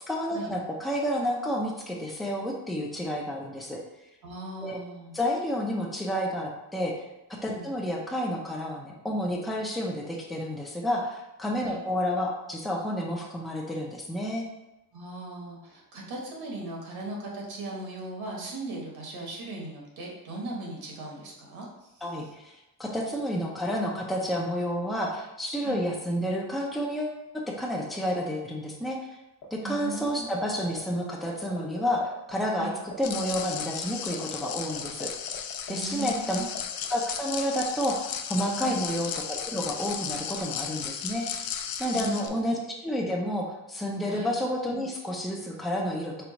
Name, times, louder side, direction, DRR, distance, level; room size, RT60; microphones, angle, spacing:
voice 1, 0.1-3.8 4.6-4.8 5.1-6.9 7.3-14.5 22.0-29.0 29.5-35.1 35.7-36.4 36.9-41.5 41.8-46.2, equal, ahead, -1 dB, 0.4 m, -30 dB
voice 2, 4.2-5.2 7.4-7.7 11.6-11.8 14.9-22.3 25.6-25.9 29.6-30.3 32.5-32.8 35.7-36.5 38.6-38.8 41.9-42.6 44.1-44.3, right 2 dB, 70° right, -2 dB, 1.2 m, -38 dB
sound 1, 29.4-30.0 30.2-32.3 32.6-32.7 32.9-36.6 36.8-37.2, left 7 dB, 85° left, 0.9 m, -40 dB
sound 2, 33.0-42.3, left 8 dB, 65° left, 0.5 m, -35 dB
4.5 x 2.3 x 3.9 m, 0.95 s
wide cardioid pair, 175°, 38 cm